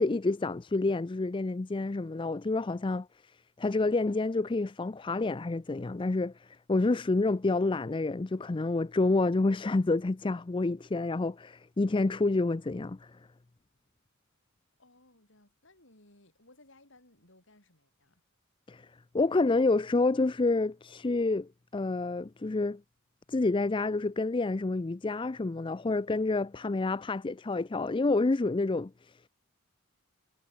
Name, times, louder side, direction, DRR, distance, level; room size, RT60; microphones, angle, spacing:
voice 1, 0.0-3.1 3.6-13.1 18.7-18.9 19.1-22.8 23.3-29.3, left 3 dB, 25° left, 0.4 m, -28 dB
voice 2, 14.8-18.2, left 2 dB, 60° left, 7.7 m, -61 dB
head